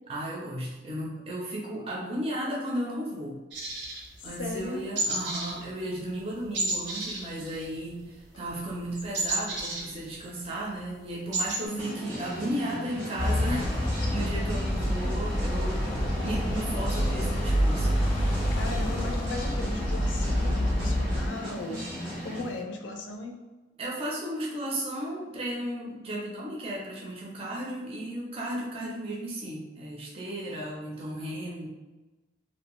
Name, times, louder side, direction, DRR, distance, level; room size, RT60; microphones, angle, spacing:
voice 1, 0.1-3.4 4.2-15.9 16.2-17.9 23.8-31.7, right 1 dB, 30° right, -4 dB, 0.5 m, -34 dB
sound 1, 3.5-4.6 4.9-5.6 5.8-6.1 6.5-8.1 8.3-10.4 10.8-10.9 11.1-11.6, right 2 dB, 75° right, 0.8 m, -31 dB
voice 2, 4.4-4.8 11.6-11.8 18.5-21.8 22.2-23.4, left 2 dB, 80° left, 2 dB, 0.4 m, -37 dB
sound 2, 11.8-22.5, equal, 90° right, 1.3 m, -37 dB
sound 3, 13.2-21.3, equal, 30° left, 0.6 m, -27 dB
2.6 x 2.1 x 2.9 m, 1.2 s
head